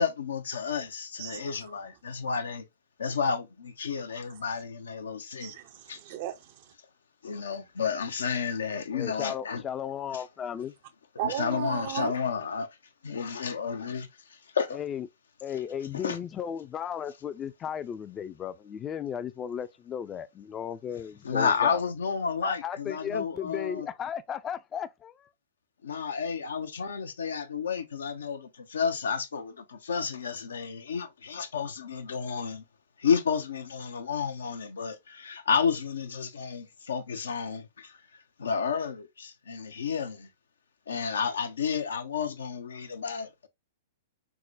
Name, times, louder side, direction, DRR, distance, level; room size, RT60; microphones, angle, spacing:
voice 1, 0.0-2.6 3.0-5.6 5.9-6.0 7.2-9.6 10.1-10.2 11.2-12.7 13.0-14.1 14.6-14.8 15.9-16.2 21.2-23.9 25.8-32.6 33.0-38.0 38.4-40.3 40.9-43.5, left 6 dB, 75° left, 0.5 m, -31 dB
voice 2, 5.4-6.7 11.2-12.1, right 10 dB, 50° right, 0.4 m, -35 dB
voice 3, 8.9-10.7 14.7-15.1 15.4-21.8 22.4-25.3, left 8 dB, 25° left, 0.4 m, -35 dB
4.7 x 2.1 x 2.3 m
hypercardioid pair, 110°, 0 cm